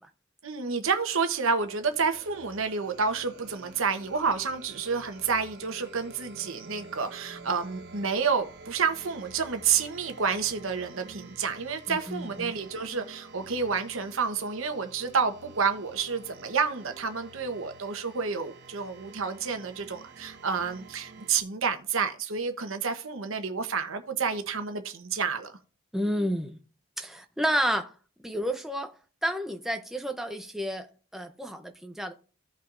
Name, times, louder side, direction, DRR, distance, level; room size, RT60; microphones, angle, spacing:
voice 1, 0.4-25.6, right 5 dB, 80° right, 0.9 m, -29 dB
sound 1, 1.5-21.4, right 3 dB, 55° right, 1.1 m, -49 dB
voice 2, 11.9-12.5 25.9-26.6 27.0-27.9 28.2-28.9 29.2-30.9 31.1-32.1, equal, ahead, 0.6 m, -30 dB
15.5 x 5.7 x 2.5 m
head